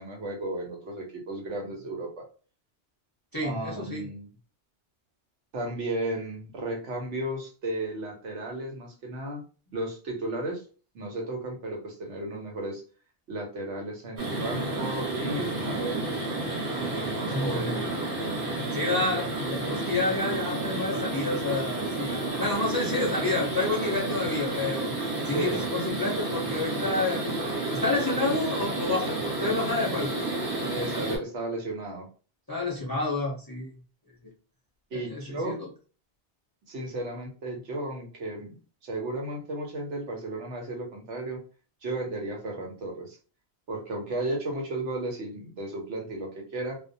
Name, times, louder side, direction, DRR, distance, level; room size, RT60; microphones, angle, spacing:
voice 1, 0.0-2.3 3.4-4.3 5.5-9.4 9.7-10.6 10.9-12.8 13.3-16.0 16.7-17.8 25.3-25.7 30.7-32.1 34.9-35.6 36.7-38.6 38.8-41.4 41.8-43.2 43.7-46.8, right 1 dB, 85° right, 1 dB, 1.1 m, -34 dB
voice 2, 3.3-4.0 17.3-17.8 18.7-24.9 25.2-27.2 27.7-30.1 32.5-33.7 34.9-35.7, left 2 dB, 30° left, -3 dB, 0.4 m, -29 dB
sound 1, 14.2-31.2, right 2 dB, 55° right, 1.0 m, -31 dB
2.3 x 2.1 x 2.6 m, 0.37 s
omnidirectional pair, 1.2 m